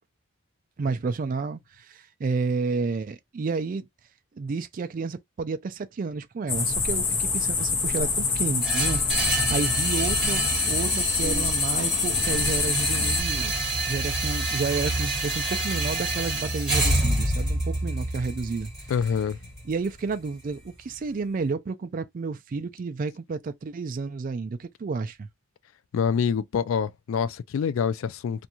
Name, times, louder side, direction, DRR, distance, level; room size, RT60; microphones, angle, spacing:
voice 1, 0.8-3.9 4.4-13.5 13.9-18.7 19.7-25.3, right 4 dB, 40° right, 0.3 m, -31 dB
sound 1, 6.5-13.2, left 4 dB, 25° left, 0.7 m, -26 dB
sound 2, 8.6-20.7, right 2 dB, 5° right, 1.2 m, -28 dB
voice 2, 18.9-19.4 25.9-28.5, left 7 dB, 70° left, 0.3 m, -26 dB
2.5 x 2.3 x 2.9 m
head